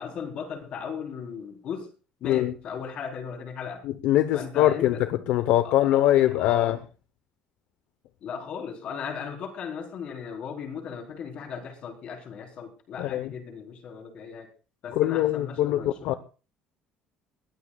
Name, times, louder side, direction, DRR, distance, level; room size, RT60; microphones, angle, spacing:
voice 1, 0.0-1.9 2.2-3.8 4.3-5.0 5.6-6.8 8.2-14.5 14.8-16.2, left 6 dB, 45° left, 4.3 m, -37 dB
voice 2, 3.8-6.8 13.0-13.3 15.0-16.2, left 13 dB, 70° left, 1.0 m, -23 dB
22.0 x 19.0 x 2.4 m
cardioid pair, 170°, 3 cm